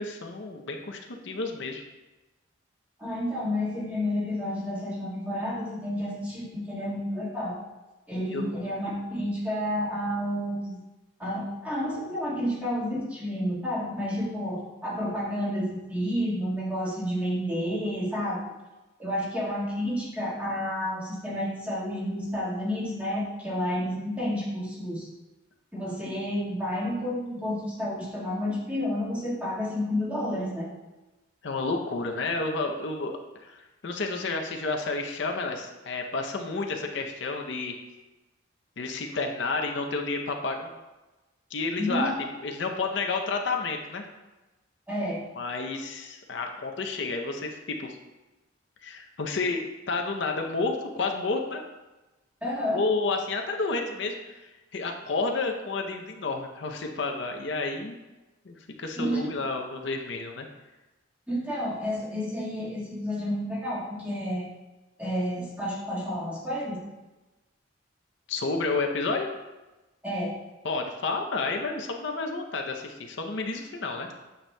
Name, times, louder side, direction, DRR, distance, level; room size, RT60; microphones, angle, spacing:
voice 1, 0.0-1.8 8.3-8.6 31.4-37.7 38.8-40.7 41.5-42.1 42.4-44.0 45.3-48.0 48.8-51.6 52.7-58.0 58.4-60.5 68.3-69.3 70.6-74.1, left 3 dB, 65° left, 3 dB, 0.6 m, -30 dB
voice 2, 3.0-7.6 8.1-10.8 11.2-18.5 19.0-25.1 25.7-30.7 41.8-42.2 44.9-45.2 52.4-52.8 58.9-59.3 61.3-64.5 65.0-66.8 70.0-70.3, equal, 5° right, -7 dB, 1.6 m, -30 dB
8.8 x 6.8 x 2.2 m, 1.1 s
head